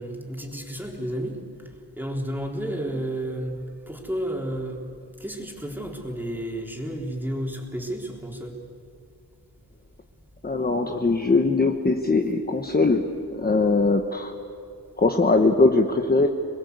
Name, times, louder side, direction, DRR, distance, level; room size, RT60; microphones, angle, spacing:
voice 1, 0.0-4.8 5.2-8.6, right 1 dB, 5° right, -1 dB, 3.8 m, -32 dB
voice 2, 10.4-14.3 15.0-16.3, left 3 dB, 25° left, 4 dB, 1.2 m, -21 dB
28.0 x 21.0 x 8.2 m, 2.4 s
wide cardioid pair, 150°, 38 cm